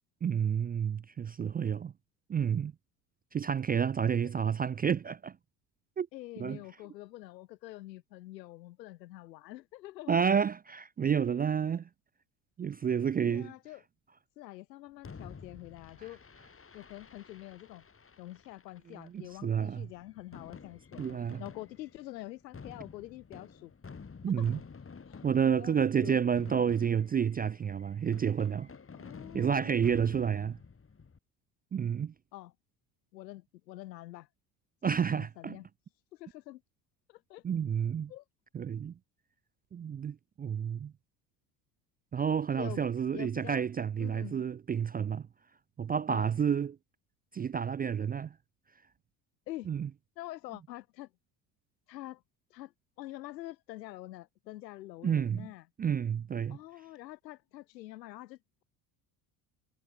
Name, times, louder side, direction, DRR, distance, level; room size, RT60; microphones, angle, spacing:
voice 1, 0.2-1.9 2.3-2.7 3.3-5.4 6.0-6.1 6.4-6.6 10.1-11.9 12.6-13.5 19.0-19.9 21.0-21.4 24.2-24.6 25.2-28.7 29.3-30.6 31.7-32.1 34.8-35.6 37.4-38.1 38.5-38.9 39.7-40.9 42.1-45.3 45.8-46.8 47.3-48.3 49.7-49.9 55.0-55.5 55.8-56.6, right 7 dB, 20° right, 0.4 m, -30 dB
voice 2, 6.1-10.2 13.2-13.8 14.4-16.2 16.7-17.9 18.2-21.0 21.4-23.7 24.4-24.5 25.1-26.2 28.9-29.8 32.3-32.5 33.1-34.3 34.8-35.7 36.1-36.6 37.1-37.4 38.1-38.2 42.6-42.8 43.1-43.6 44.0-44.4 46.1-46.3 49.5-49.7 50.2-51.1 51.9-52.2 52.5-52.7 53.0-55.7 56.5-58.6, left 16 dB, 85° left, 3.7 m, -46 dB
Fireworks, 15.0-31.2, left 5 dB, 25° left, 5.8 m, -51 dB
hypercardioid pair, 70°, 49 cm